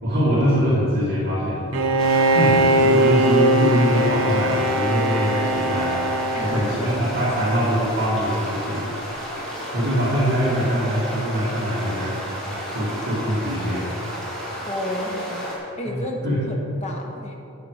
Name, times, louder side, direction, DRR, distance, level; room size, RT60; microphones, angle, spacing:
voice 1, 0.0-1.6 2.3-5.9 6.4-9.3 9.7-12.1 12.4-13.8 15.9-16.4, equal, 45° right, -8 dB, 2.4 m, -23 dB
Bowed string instrument, 1.7-7.3, right 1 dB, 70° right, 0.8 m, -20 dB
sound 1, 2.0-15.6, equal, 5° left, 2.2 m, -33 dB
voice 2, 6.3-6.9 14.6-15.5 15.8-17.3, left 1 dB, 30° left, 0 dB, 1.3 m, -31 dB
12.0 x 7.8 x 5.0 m, 2.9 s
head